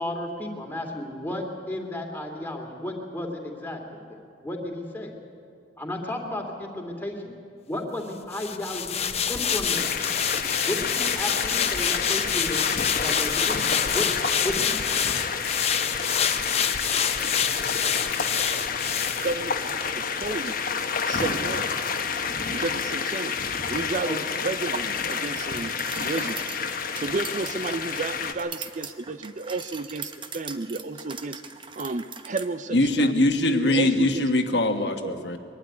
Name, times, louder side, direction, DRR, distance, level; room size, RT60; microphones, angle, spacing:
voice 1, 0.0-5.1 5.8-7.4 7.7-9.0 9.3-9.8 10.7-12.7 13.0-14.0 14.4-15.0 24.0-24.1, left 1 dB, 10° left, 1 dB, 2.5 m, -33 dB
sound 1, 8.3-19.9 20.2-20.4, left 8 dB, 35° left, 0.9 m, -27 dB
sound 2, 9.7-28.3, left 5 dB, 50° left, 1.2 m, -29 dB
voice 2, 19.2-20.6 21.1-21.7 22.5-23.4 23.7-26.4 26.8-31.4 31.8-33.1 33.7-34.3 34.8-35.2, right 3 dB, 45° right, 11 dB, 0.6 m, -32 dB
sound 3, 25.1-32.5, right 5 dB, 30° right, 1.0 m, -41 dB
voice 3, 32.7-35.4, left 1 dB, 70° left, 5 dB, 1.4 m, -22 dB
22.5 x 12.0 x 9.7 m, 2.3 s
head